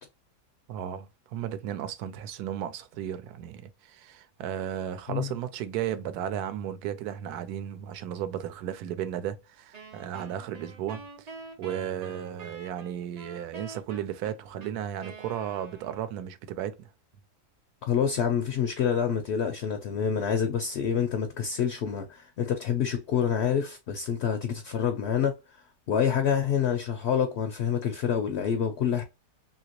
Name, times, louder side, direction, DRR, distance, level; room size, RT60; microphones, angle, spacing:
voice 1, 0.7-11.3 11.6-16.9, right 10 dB, 75° right, 1.1 m, -34 dB
Wind instrument woodwind instrument, 9.7-16.3, right 3 dB, 50° right, 0.4 m, -46 dB
voice 2, 17.8-25.4 25.9-29.0, left 8 dB, 70° left, 0.6 m, -27 dB
2.8 x 2.8 x 2.8 m
omnidirectional pair, 1.7 m